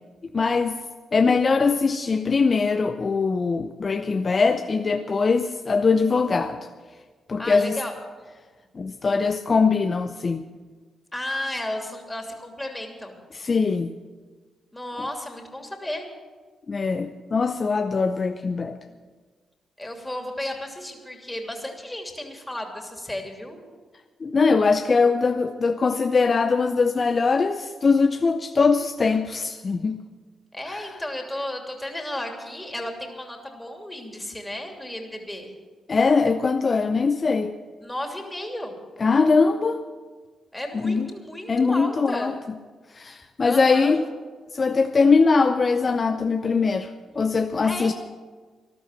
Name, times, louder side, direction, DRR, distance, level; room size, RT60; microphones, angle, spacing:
voice 1, 0.3-0.8 1.1-6.6 7.3-7.8 8.7-10.4 13.3-13.9 16.7-18.8 24.2-30.0 30.7-30.9 35.9-37.5 39.0-39.8 40.7-41.1 41.5-42.3 42.9-44.0 44.5-46.9 47.2-47.9, left 4 dB, 45° left, 8 dB, 0.7 m, -21 dB
voice 2, 7.4-7.9 11.1-13.2 14.7-16.1 18.8-19.0 19.8-23.6 30.5-35.5 37.8-38.7 40.5-42.4 43.4-44.0 47.6-47.9, left 1 dB, 15° left, 3 dB, 2.9 m, -33 dB
14.0 x 12.0 x 7.4 m, 1.5 s
supercardioid pair, 50°, 0 cm